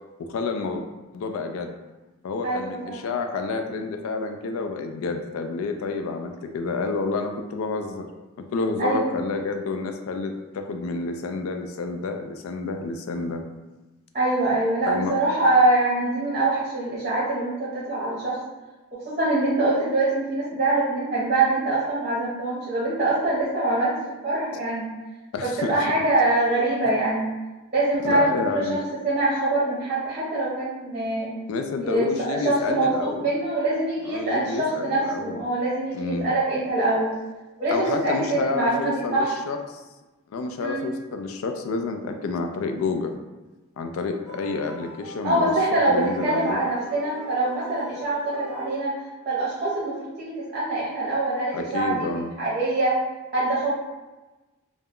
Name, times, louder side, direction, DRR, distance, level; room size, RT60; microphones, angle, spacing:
voice 1, 0.2-0.8 1.1-1.7 2.2-8.1 8.4-13.4 14.9-15.1 25.3-25.8 28.0-28.8 31.5-33.4 34.1-35.4 35.9-36.3 37.7-39.8 40.3-43.1 43.8-46.6 51.5-52.3, left 4 dB, 85° left, 6 dB, 0.3 m, -29 dB
voice 2, 2.4-3.0 8.8-9.1 14.1-18.4 18.9-23.9 24.2-24.9 25.4-27.3 27.7-28.8 29.0-31.3 31.8-37.1 37.6-39.3 40.6-40.8 45.2-49.0 49.3-52.9 53.3-53.7, right 2 dB, 35° right, -8 dB, 0.7 m, -24 dB
sound 1, 44.3-49.1, equal, ahead, 0.8 m, -42 dB
2.2 x 2.0 x 3.5 m, 1.1 s
head